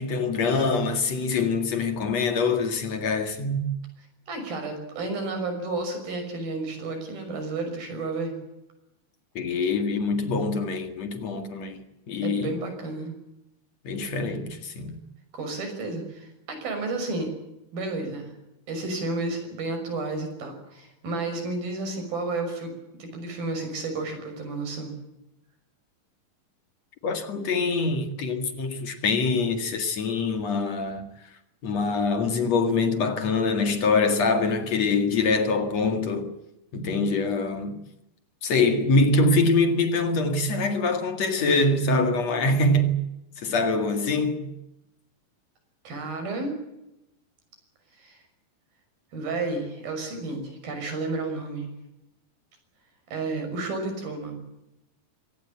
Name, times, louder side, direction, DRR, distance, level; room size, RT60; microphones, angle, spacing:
voice 1, 0.0-3.6 9.3-12.6 13.8-15.0 27.0-31.1 31.6-36.3 36.7-37.8 38.4-42.9 43.4-44.5, left 3 dB, 50° left, 2.9 m, -24 dB
voice 2, 4.3-8.3 12.2-13.1 15.3-17.3 17.7-18.3 18.7-22.7 23.0-25.0 45.8-46.5 48.0-48.2 49.1-51.7 53.1-54.4, right 3 dB, 90° right, 7.9 m, -31 dB
24.0 x 18.5 x 8.8 m
omnidirectional pair, 4.1 m